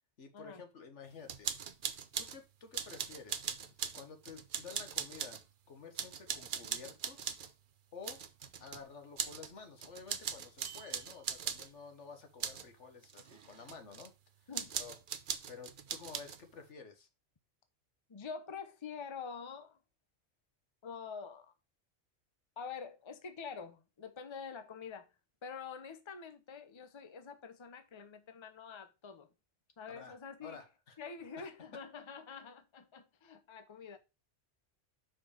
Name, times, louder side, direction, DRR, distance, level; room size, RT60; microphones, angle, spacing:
voice 1, 0.2-1.5 1.9-3.6 3.9-5.4 5.7-7.4 7.9-8.2 8.6-14.1 14.4-15.0 15.5-17.1 29.9-31.0 31.4-31.5, left 5 dB, 85° left, 1.7 m, -51 dB
sound 1, 1.3-2.4 2.7-5.4 6.0-7.5 8.0-8.8 9.2-9.5 9.8-11.7 12.4-12.7 13.0-14.1 14.5-16.4, right 7 dB, 55° right, 0.8 m, -40 dB
voice 2, 18.1-19.8 20.8-21.5 22.6-25.1 25.4-29.3 29.8-30.6 31.0-34.0, left 6 dB, 30° left, 0.8 m, -46 dB
6.1 x 4.8 x 4.9 m
omnidirectional pair, 1.2 m